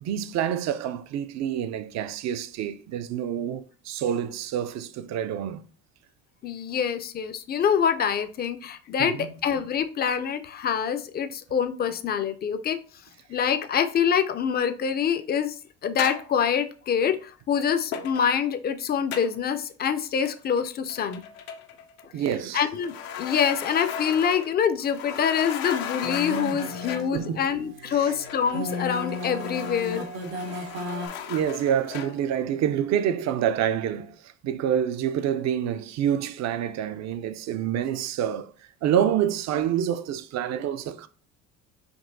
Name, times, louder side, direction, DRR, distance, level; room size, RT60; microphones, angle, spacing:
voice 1, 0.0-5.6 9.0-9.3 22.1-22.6 27.1-27.5 27.9-28.1 30.5-30.7 31.3-34.2 34.4-38.5 38.8-41.1, right 9 dB, 45° right, 0.5 m, -27 dB
voice 2, 6.4-12.8 13.3-15.6 15.8-21.2 22.5-30.0, left 7 dB, 25° left, 0.4 m, -25 dB
sound 1, 16.0-16.4 17.9-18.4 19.1-19.5 20.3-20.6 20.9-22.0 22.6-24.6 24.9-27.2 28.1-32.3, left 8 dB, 80° left, 0.6 m, -37 dB
sound 2, 26.0-31.1, left 1 dB, 75° right, 1.0 m, -35 dB
5.3 x 2.7 x 2.6 m
hypercardioid pair, 70°, 40 cm